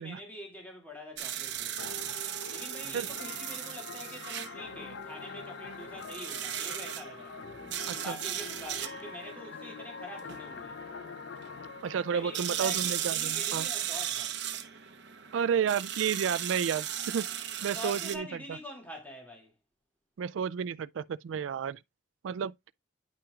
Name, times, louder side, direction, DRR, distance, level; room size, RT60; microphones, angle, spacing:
voice 1, 0.0-2.0 2.5-7.4 7.8-10.8 12.1-14.4 17.7-19.5, left 1 dB, 10° left, 2.4 m, -45 dB
sound 1, 1.2-18.2, right 11 dB, 65° right, 0.8 m, -37 dB
sound 2, 1.8-13.1, left 5 dB, 75° left, 0.5 m, -45 dB
voice 2, 7.9-8.2 11.8-13.7 15.3-17.3 17.6-18.3 20.2-21.8 22.2-22.5, right 7 dB, 90° right, 0.3 m, -31 dB
9.8 x 5.9 x 2.4 m
head